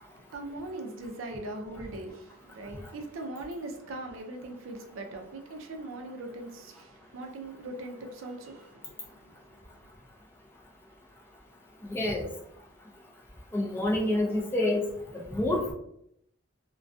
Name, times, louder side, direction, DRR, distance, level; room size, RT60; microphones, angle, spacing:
voice 1, 0.0-9.9, right 2 dB, 75° right, 0.4 m, -41 dB
voice 2, 11.8-12.3 13.5-14.8 15.1-15.7, left 1 dB, 10° left, 0.3 m, -27 dB
2.3 x 2.2 x 2.5 m
head